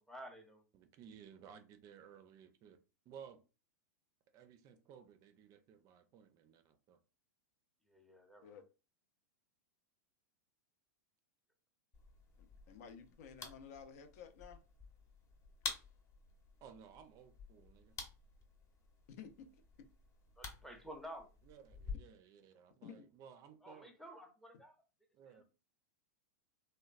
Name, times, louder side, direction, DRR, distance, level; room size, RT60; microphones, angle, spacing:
voice 1, 0.0-0.6 7.9-8.6 20.4-21.3 23.6-24.8 25.3-25.4, equal, 5° left, 0.6 m, -52 dB
voice 2, 0.7-2.8 3.1-3.4 4.3-7.0 16.6-18.0 21.4-23.9 25.1-25.4, right 8 dB, 40° right, 0.4 m, -58 dB
sound 1, 11.9-21.9, left 4 dB, 35° left, 0.8 m, -50 dB
voice 3, 12.4-14.6 19.1-19.6 22.8-23.1, left 7 dB, 60° left, 0.5 m, -53 dB
2.9 x 2.1 x 2.4 m
hypercardioid pair, 110°, 9 cm